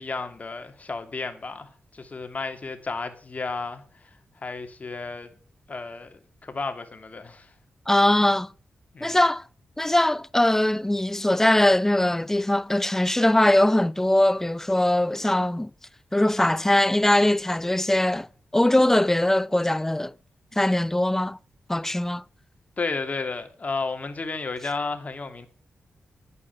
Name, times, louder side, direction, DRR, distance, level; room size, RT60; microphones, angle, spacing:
voice 1, 0.0-3.8 4.4-5.3 5.7-7.5 8.9-9.2 22.8-25.5, left 4 dB, 40° left, 2.5 m, -32 dB
voice 2, 7.9-8.5 9.0-9.4 9.8-15.7 16.1-18.3 18.5-20.1 20.6-21.4 21.7-22.2, left 1 dB, 10° left, 0.5 m, -21 dB
11.5 x 9.6 x 7.1 m
cardioid pair, 85°, 4 cm